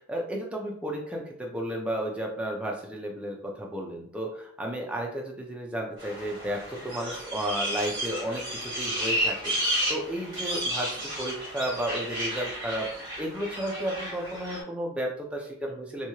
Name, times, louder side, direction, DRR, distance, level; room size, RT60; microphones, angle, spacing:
voice 1, 0.0-9.5 9.9-12.9 13.2-16.1, right 1 dB, 5° right, -1 dB, 0.4 m, -33 dB
sound 1, 6.0-14.6, equal, 20° right, 1.3 m, -32 dB
2.9 x 2.3 x 2.8 m, 0.65 s
head